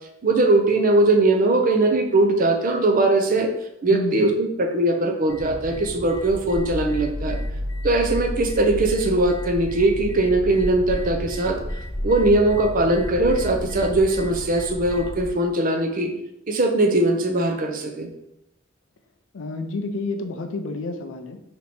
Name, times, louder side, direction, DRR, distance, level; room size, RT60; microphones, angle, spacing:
voice 1, 0.2-3.5 3.8-7.4 7.8-11.6 12.0-16.1 16.5-18.1, right 2 dB, 45° right, 4 dB, 0.6 m, -20 dB
voice 2, 3.9-4.3 19.3-21.4, left 3 dB, 75° left, 6 dB, 0.5 m, -30 dB
sound 1, 5.3-15.3, equal, 20° left, 0.5 m, -31 dB
3.3 x 2.9 x 4.2 m, 0.83 s
head